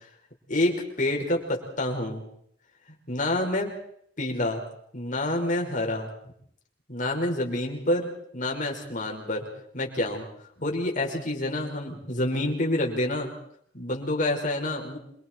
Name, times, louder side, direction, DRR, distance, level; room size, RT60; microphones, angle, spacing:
voice 1, 0.5-2.2 3.1-3.7 4.2-4.6 4.9-6.1 6.9-8.1 8.3-9.5 9.7-10.3 10.6-13.3 13.7-15.0, left 1 dB, 45° left, 1 dB, 5.6 m, -27 dB
27.5 x 24.5 x 4.7 m, 0.66 s
head